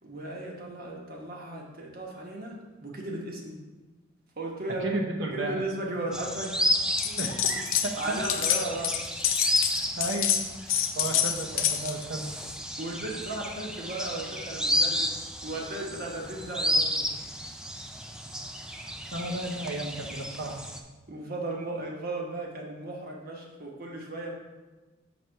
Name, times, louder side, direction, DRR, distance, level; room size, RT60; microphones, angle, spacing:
voice 1, 0.0-3.6 4.4-5.0 5.3-6.6 8.0-9.0 12.8-17.1 21.1-24.3, right 2 dB, 50° right, -1 dB, 1.1 m, -36 dB
voice 2, 4.8-5.6 7.0-8.2 9.3-10.3 10.9-12.3 19.1-20.6, right 2 dB, 65° right, 2 dB, 0.9 m, -33 dB
sound 1, 6.1-20.8, equal, 5° right, 0.3 m, -32 dB
sound 2, 7.0-12.0, left 10 dB, 80° left, 0.5 m, -27 dB
6.1 x 3.3 x 5.4 m, 1.2 s
head